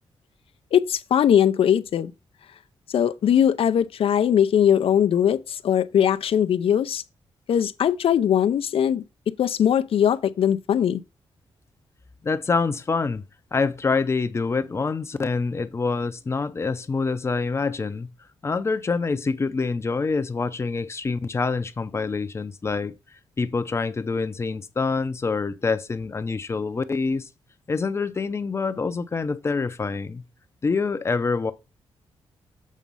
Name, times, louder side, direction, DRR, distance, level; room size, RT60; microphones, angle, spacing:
voice 1, 0.7-2.1 2.9-7.0 7.5-9.0 9.4-11.0, left 9 dB, 70° left, 0.5 m, -20 dB
voice 2, 12.2-13.2 13.5-18.1 18.4-23.0 23.4-27.3 27.7-30.2 30.6-31.5, left 4 dB, 25° left, 0.6 m, -26 dB
7.4 x 4.1 x 5.4 m
wide cardioid pair, 150°, 10 cm